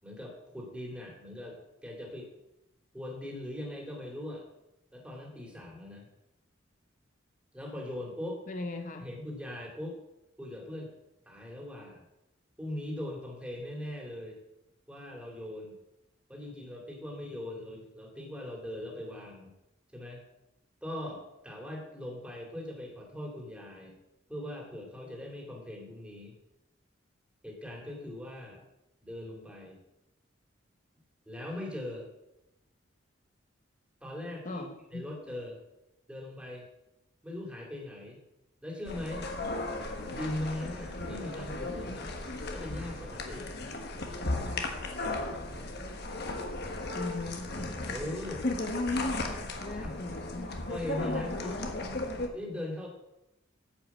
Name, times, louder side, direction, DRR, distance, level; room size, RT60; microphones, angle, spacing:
voice 1, 0.0-2.3 2.9-4.4 4.9-6.1 7.5-8.4 9.0-10.0 10.4-10.9 11.2-12.0 12.6-14.4 14.9-15.7 16.3-19.5 19.9-20.2 20.8-23.9 24.3-26.3 27.4-28.6 29.0-29.8 31.3-32.1 34.0-34.6 34.9-35.6 36.1-36.6 37.2-38.2 38.6-39.3 40.1-42.1 42.5-43.5 47.8-48.5 49.6-49.9 50.7-51.7 52.3-52.9, left 1 dB, 5° right, -2 dB, 2.7 m, -40 dB
voice 2, 8.5-9.1 34.4-35.1 46.9-47.5 49.6-50.6, left 2 dB, 40° left, 5 dB, 0.8 m, -39 dB
sound 1, 38.8-52.3, left 2 dB, 55° left, 1.4 m, -35 dB
9.8 x 5.8 x 7.2 m, 0.89 s
head